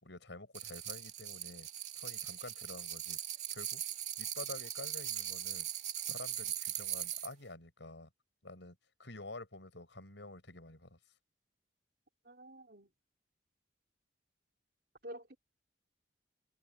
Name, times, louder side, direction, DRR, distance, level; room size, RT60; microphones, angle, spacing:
voice 1, 0.0-1.7 1.9-3.2 3.5-3.8 4.2-5.7 6.1-8.1 8.4-11.0, left 2 dB, 90° left, 6.5 m, -49 dB
sound 1, 0.5-7.3, right 11 dB, 40° right, 3.0 m, -40 dB
voice 2, 12.2-12.9 15.0-15.4, right 1 dB, 55° right, 4.2 m, -49 dB
head